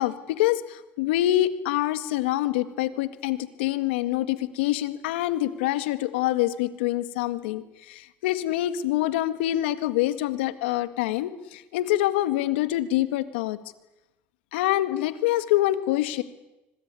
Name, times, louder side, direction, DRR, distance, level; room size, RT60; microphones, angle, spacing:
voice 1, 0.0-13.6 14.5-16.2, left 14 dB, 90° left, 13 dB, 1.9 m, -25 dB
25.5 x 23.0 x 9.8 m, 0.98 s
supercardioid pair, 80°, 6 cm